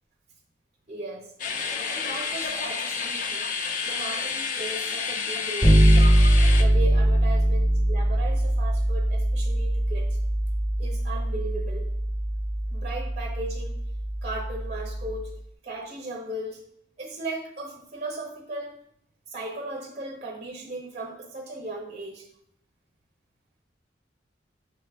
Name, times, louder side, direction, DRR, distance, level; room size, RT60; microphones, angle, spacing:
voice 1, 0.9-1.3 1.8-3.5 3.8-6.0 6.5-10.2 10.8-11.9 12.7-13.8 14.2-15.3 15.6-16.6 17.0-18.8 19.3-22.3, right 2 dB, 35° right, 0 dB, 0.5 m, -37 dB
sound 1, 1.4-6.6, left 5 dB, 45° left, 0.3 m, -30 dB
Bass guitar, 5.6-15.3, right 1 dB, 15° left, 0.7 m, -22 dB
5.7 x 2.4 x 3.3 m, 0.72 s
head